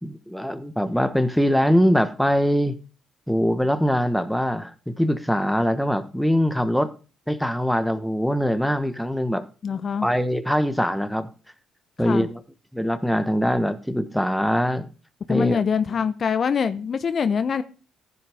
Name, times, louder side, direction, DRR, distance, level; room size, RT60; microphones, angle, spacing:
voice 1, 0.0-2.8 3.3-6.9 7.3-9.4 10.0-11.3 12.0-12.4 12.7-14.9 15.3-15.6, equal, ahead, 1.4 m, -22 dB
voice 2, 9.6-10.1 12.0-12.3 15.3-17.6, left 6 dB, 50° left, 0.9 m, -24 dB
15.0 x 8.0 x 3.6 m
hypercardioid pair, 50°, 0 cm